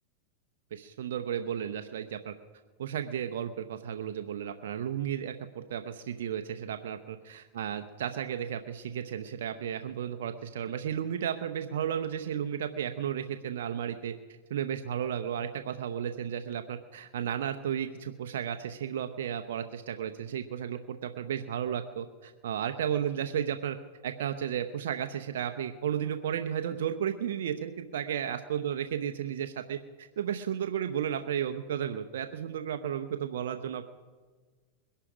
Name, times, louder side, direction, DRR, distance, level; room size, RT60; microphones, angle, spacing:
voice 1, 0.7-2.3 2.8-14.1 14.5-23.8 24.0-33.8, right 9 dB, 80° right, 8 dB, 0.8 m, -33 dB
21.5 x 11.5 x 5.0 m, 1.4 s
hypercardioid pair, 115°, 0 cm